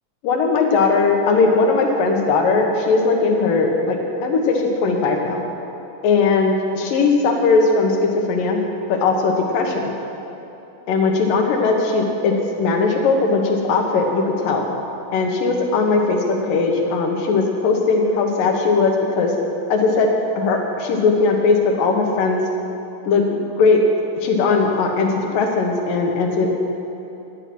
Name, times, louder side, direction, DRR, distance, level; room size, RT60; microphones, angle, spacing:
voice 1, 0.2-5.4 6.0-8.6 8.9-9.9 10.9-14.7 15.1-19.3 19.7-20.1 20.4-22.4 23.0-23.8 24.2-26.6, left 4 dB, 90° left, 2 dB, 2.9 m, -19 dB
11.0 x 10.0 x 6.0 m, 3.0 s
omnidirectional pair, 3.8 m